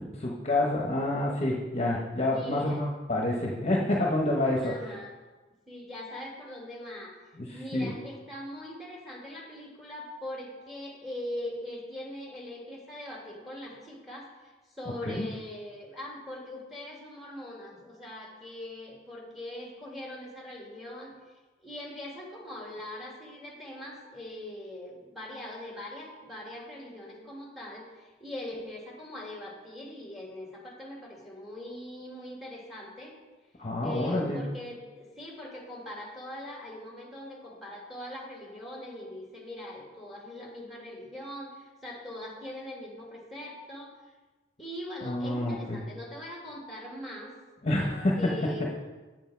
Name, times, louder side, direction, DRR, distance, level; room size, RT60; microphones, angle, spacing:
voice 1, 0.2-4.7 7.4-7.9 15.1-15.3 33.6-34.4 45.0-45.8 47.6-48.2, left 1 dB, 35° left, -1 dB, 1.1 m, -28 dB
voice 2, 2.2-2.8 4.6-5.1 5.7-7.1 7.5-21.1 21.6-33.1 33.8-44.0 44.6-47.3 48.2-48.7, left 1 dB, ahead, -2 dB, 2.0 m, -41 dB
8.1 x 7.7 x 4.6 m, 1.2 s
head